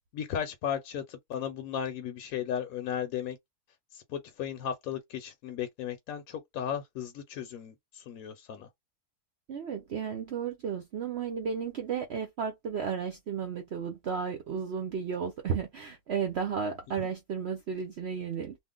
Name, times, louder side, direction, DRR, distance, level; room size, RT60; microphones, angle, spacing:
voice 1, 0.1-3.4 3.9-8.7, left 9 dB, 70° left, 1.0 m, -35 dB
voice 2, 9.5-18.6, right 6 dB, 65° right, 0.6 m, -33 dB
2.6 x 2.1 x 3.6 m
omnidirectional pair, 1.7 m